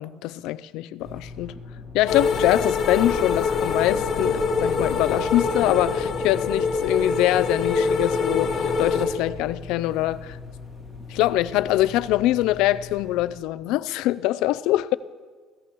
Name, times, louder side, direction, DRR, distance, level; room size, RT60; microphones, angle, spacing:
voice 1, 0.0-1.5 1.9-10.4 11.1-14.9, left 15 dB, 70° left, 0.4 m, -24 dB
sound 1, 1.0-13.4, left 4 dB, 5° left, 2.0 m, -41 dB
sound 2, 2.1-9.1, left 4 dB, 35° left, 1.3 m, -24 dB
29.0 x 15.5 x 3.0 m
cardioid pair, 165°, 0 cm